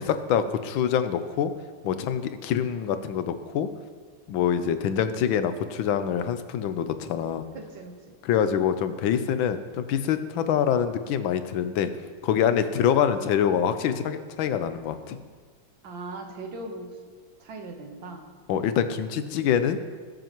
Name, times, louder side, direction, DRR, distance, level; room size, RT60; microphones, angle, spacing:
voice 1, 0.0-1.5 1.8-3.7 4.3-7.4 8.2-11.9 12.2-15.2 18.5-19.8, left 8 dB, 85° left, 10 dB, 1.4 m, -25 dB
voice 2, 7.5-8.2 15.8-17.0 17.4-18.3, right 2 dB, 75° right, 3 dB, 2.0 m, -39 dB
19.5 x 7.7 x 3.0 m, 1.5 s
omnidirectional pair, 2.1 m